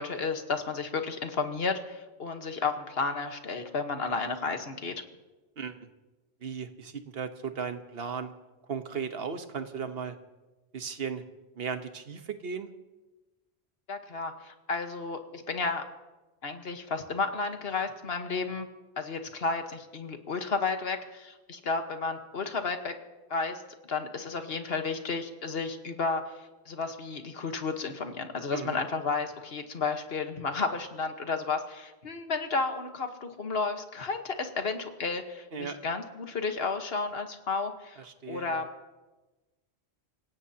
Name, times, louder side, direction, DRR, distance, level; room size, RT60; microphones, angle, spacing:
voice 1, 0.0-4.9 13.9-15.8 16.4-18.7 19.0-22.9 23.3-23.6 23.9-38.7, left 4 dB, 65° left, 6 dB, 1.5 m, -32 dB
voice 2, 5.6-5.9 6.4-8.3 8.7-10.2 10.7-11.2 11.5-12.7 28.5-28.8 35.5-35.8 38.0-38.6, right 6 dB, 65° right, 8 dB, 1.3 m, -36 dB
27.0 x 17.0 x 2.9 m, 1.1 s
omnidirectional pair, 1.1 m